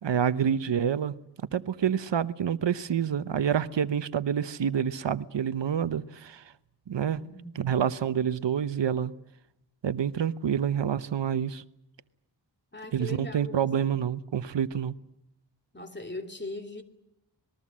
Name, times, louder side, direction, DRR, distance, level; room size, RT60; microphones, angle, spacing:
voice 1, 0.0-1.1 1.5-6.4 6.9-7.2 7.6-9.1 9.8-11.6 12.9-14.9, right 8 dB, 85° right, 0.9 m, -27 dB
voice 2, 7.1-7.7 12.7-13.9 15.7-16.8, left 2 dB, 25° left, 2.9 m, -40 dB
26.5 x 21.0 x 7.4 m
wide cardioid pair, 100°, 42 cm